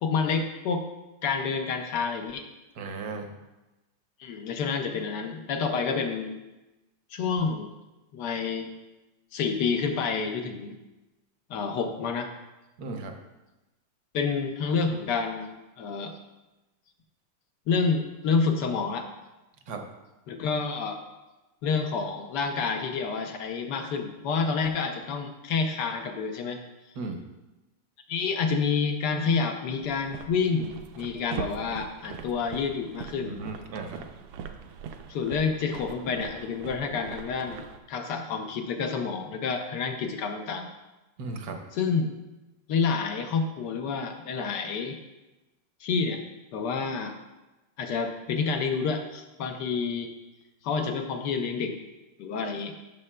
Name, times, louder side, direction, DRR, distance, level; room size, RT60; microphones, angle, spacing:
voice 1, 0.0-0.8 1.2-2.4 4.2-6.4 7.1-7.7 8.1-8.7 9.3-10.8 11.5-12.3 14.1-15.5 15.8-16.1 17.7-19.1 20.3-21.0 21.6-26.6 28.1-33.4 35.1-37.6 37.9-40.7 41.7-42.1 42.7-45.0 45.8-46.2 46.5-47.1 47.8-50.1 50.6-51.8 52.2-52.7, left 5 dB, 65° left, 5 dB, 1.1 m, -28 dB
voice 2, 2.8-3.3 12.8-13.1 19.7-19.8 27.0-27.2 33.2-34.0 41.2-41.6, right 3 dB, 65° right, 4 dB, 1.1 m, -36 dB
sound 1, 29.8-37.8, right 7 dB, 85° right, 1.5 m, -41 dB
13.0 x 6.5 x 2.2 m, 1.0 s
omnidirectional pair, 2.4 m